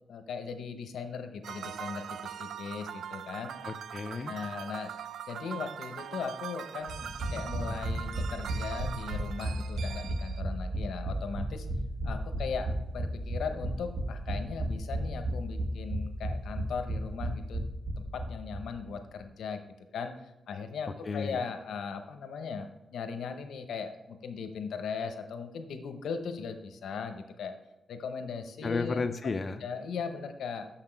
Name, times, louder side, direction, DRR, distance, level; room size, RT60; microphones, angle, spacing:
voice 1, 0.1-3.5 4.3-4.9 5.3-11.7 12.0-17.6 18.1-19.6 19.9-20.1 20.5-27.5 27.9-29.0 29.6-30.7, left 5 dB, 90° left, 7 dB, 0.7 m, -38 dB
sound 1, 1.4-10.4, right 9 dB, 90° right, 0.3 m, -42 dB
voice 2, 3.6-4.3 21.0-21.4 28.6-29.6, left 4 dB, 40° left, 8 dB, 0.4 m, -33 dB
sound 2, 6.9-18.6 18.9-19.0 19.2-19.3, right 1 dB, 30° right, 1.6 m, -34 dB
6.7 x 5.8 x 4.5 m, 0.94 s
cardioid pair, 105°, 0 cm